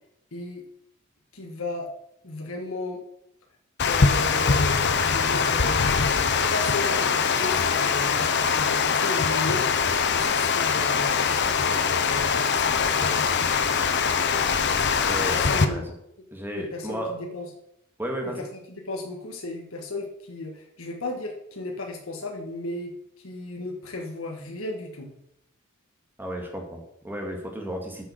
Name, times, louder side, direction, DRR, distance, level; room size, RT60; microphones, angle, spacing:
voice 1, 0.3-0.6 1.3-1.9 2.2-3.0 3.8-9.9 10.1-13.5 15.1-15.8 16.6-17.5 18.2-18.3 18.8-25.1, left 2 dB, 80° left, 1 dB, 1.6 m, -35 dB
Water, 3.8-15.7, left 5 dB, 55° left, 0.8 m, -23 dB
voice 2, 15.1-15.8 16.3-17.1 18.0-18.4 26.2-28.1, equal, 10° right, 1 dB, 2.1 m, -33 dB
8.9 x 6.3 x 6.4 m, 0.78 s
head